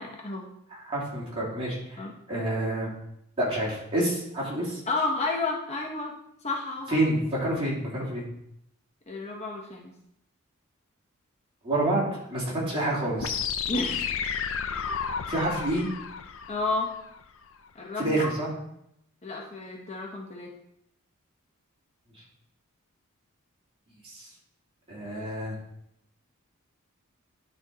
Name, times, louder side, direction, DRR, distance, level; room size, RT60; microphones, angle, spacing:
voice 1, 0.0-0.5 2.0-2.2 4.9-6.1 6.4-7.0 9.1-9.9 13.7-14.1 16.5-16.9 17.7-18.3 19.2-20.5, left 3 dB, 30° left, -1 dB, 0.9 m, -31 dB
voice 2, 0.7-2.9 3.4-4.8 6.9-8.2 11.6-12.0 12.3-13.4 15.3-15.8 18.0-18.5 24.0-24.3 24.9-25.6, right 1 dB, 25° right, -6 dB, 2.9 m, -28 dB
sound 1, 13.2-17.2, left 7 dB, 65° left, 0.6 m, -32 dB
10.5 x 4.5 x 3.9 m, 0.77 s
head